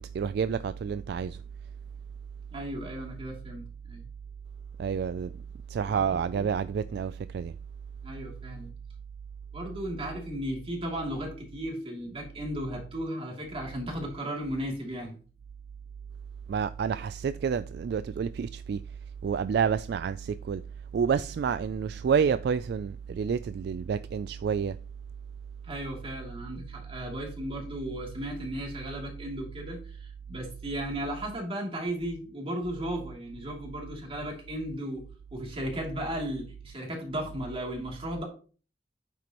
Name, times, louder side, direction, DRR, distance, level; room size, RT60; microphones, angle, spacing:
voice 1, 0.0-1.4 4.8-5.3 5.7-7.5 16.5-18.8 19.2-20.6 20.9-24.8, right 6 dB, 60° right, 0.3 m, -29 dB
voice 2, 2.5-4.1 5.9-6.5 8.0-8.7 9.5-15.2 25.6-35.0 35.3-38.2, equal, 30° right, 2.8 m, -35 dB
9.3 x 7.6 x 3.0 m
head